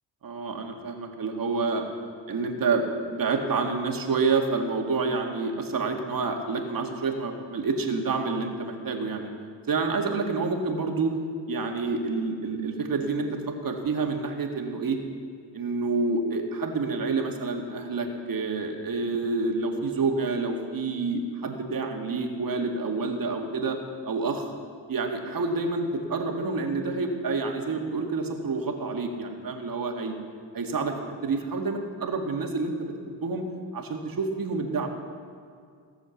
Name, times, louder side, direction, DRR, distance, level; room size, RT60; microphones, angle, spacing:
voice 1, 0.2-1.9 2.3-9.3 9.7-11.1 11.5-15.0 15.5-23.8 24.1-24.5 24.9-30.2 30.5-30.9 31.2-32.9 33.2-33.5 33.7-34.9, right 4 dB, 45° right, 3 dB, 2.0 m, -28 dB
17.5 x 7.2 x 7.1 m, 2.2 s
cardioid pair, 80°, 47 cm